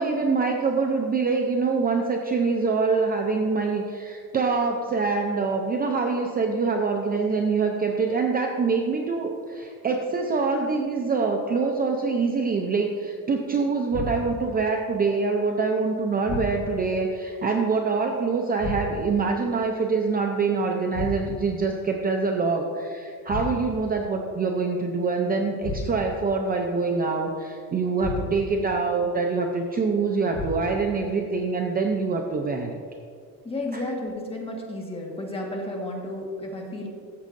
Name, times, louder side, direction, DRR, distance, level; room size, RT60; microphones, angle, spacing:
voice 1, 0.0-32.8 33.7-33.9, right 4 dB, 25° right, 2 dB, 0.5 m, -25 dB
sound 1, 13.9-14.5 16.2-16.9 18.6-19.2 20.9-21.6 23.3-23.9 25.6-26.2 28.0-28.6 30.3-30.9, left 2 dB, 40° left, 1.8 m, -33 dB
voice 2, 33.4-36.9, left 1 dB, 15° left, -1 dB, 1.5 m, -32 dB
13.5 x 7.3 x 2.6 m, 2.2 s
cardioid pair, 140°, 37 cm